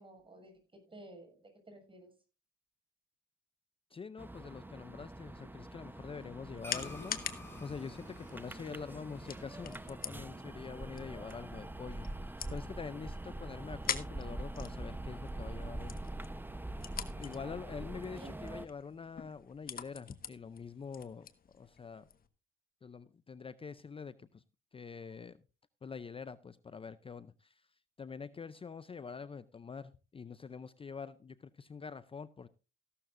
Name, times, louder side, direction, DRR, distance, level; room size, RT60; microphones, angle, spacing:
voice 1, 0.0-2.1 18.1-18.3, right 1 dB, 25° right, 6.9 m, -53 dB
voice 2, 3.9-7.3 7.6-16.0 17.2-21.3 21.5-22.1 22.8-24.4 24.7-25.4 25.8-27.7 28.0-32.5, left 5 dB, 30° left, 0.6 m, -45 dB
sound 1, 4.2-18.7, right 1 dB, 10° right, 0.9 m, -44 dB
sound 2, 5.9-22.3, left 7 dB, 45° left, 1.4 m, -46 dB
sound 3, 6.6-11.2, left 1 dB, 10° left, 7.0 m, -52 dB
15.0 x 12.5 x 2.6 m
cardioid pair, 90°, 20 cm